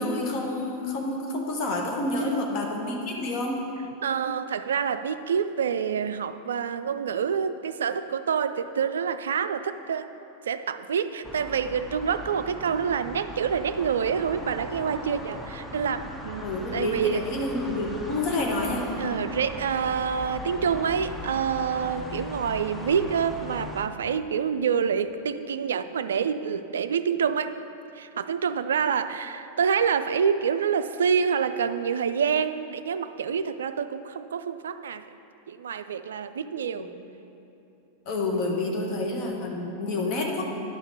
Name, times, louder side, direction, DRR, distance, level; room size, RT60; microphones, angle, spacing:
voice 1, 0.0-3.6 16.4-18.9 36.6-36.7 38.0-40.4, left 2 dB, 40° left, 0 dB, 1.4 m, -28 dB
voice 2, 4.0-10.1 10.4-17.3 17.7-17.9 19.0-27.6 27.9-35.1 35.5-36.9 38.6-38.9, right 7 dB, 65° right, 12 dB, 0.3 m, -27 dB
sound 1, 11.2-23.9, left 1 dB, 10° left, 0.8 m, -39 dB
10.5 x 5.7 x 5.6 m, 2.9 s
figure-of-eight pair, 90°, 0 cm